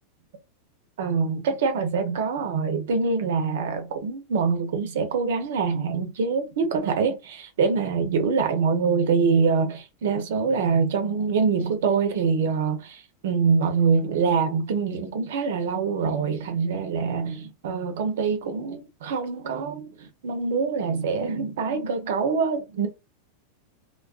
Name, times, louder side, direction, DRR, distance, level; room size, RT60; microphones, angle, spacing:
voice 1, 1.0-22.9, right 5 dB, 75° right, 0.7 m, -25 dB
2.3 x 2.2 x 2.4 m
hypercardioid pair, 110°, 0 cm